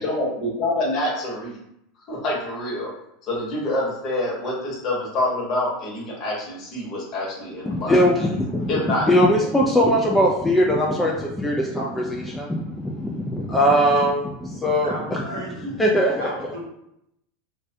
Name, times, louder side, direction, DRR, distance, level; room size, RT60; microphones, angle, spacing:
voice 1, 0.0-1.6 2.1-2.9 3.2-8.0 8.7-9.8 11.7-11.8, left 1 dB, 45° left, -4 dB, 1.0 m, -27 dB
voice 2, 7.6-8.8 9.1-15.4 15.8-16.5, equal, 10° left, -2 dB, 0.3 m, -21 dB
voice 3, 14.8-15.8 16.2-16.6, right 1 dB, 80° right, -3 dB, 0.8 m, -33 dB
2.2 x 2.2 x 2.6 m, 0.79 s
hypercardioid pair, 90°, 0 cm